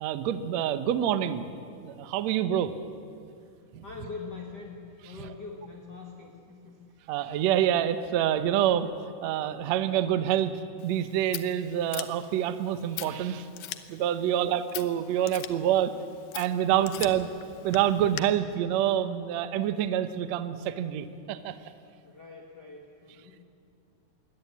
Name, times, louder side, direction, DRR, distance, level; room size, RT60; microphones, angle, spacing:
voice 1, 0.0-1.5 1.8-2.7 3.7-3.8 5.2-5.3 7.1-8.9 9.2-13.5 13.9-15.9 16.3-17.3 17.6-21.6, right 10 dB, 70° right, 11 dB, 1.9 m, -27 dB
voice 2, 3.4-7.1 14.2-14.6 16.9-17.2 22.0-23.4, left 4 dB, 40° left, 0 dB, 2.0 m, -44 dB
Scissors, 10.8-18.2, left 13 dB, 80° left, 2.5 m, -42 dB
22.5 x 18.5 x 8.5 m, 2.4 s
omnidirectional pair, 3.8 m